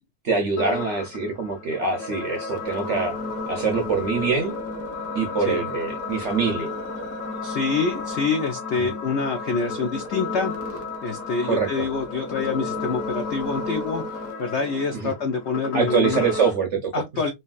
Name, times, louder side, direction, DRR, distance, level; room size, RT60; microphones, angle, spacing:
voice 1, 0.2-3.2 3.5-4.5 5.1-6.7 8.8-8.9 11.5-11.9 14.9-15.1 15.7-16.9, right 5 dB, 65° right, 0.7 m, -24 dB
sound 1, 0.6-16.6, left 3 dB, 55° left, 1.1 m, -32 dB
voice 2, 7.4-16.2 16.9-17.3, left 4 dB, 85° left, 0.6 m, -26 dB
3.2 x 2.8 x 2.3 m
omnidirectional pair, 1.9 m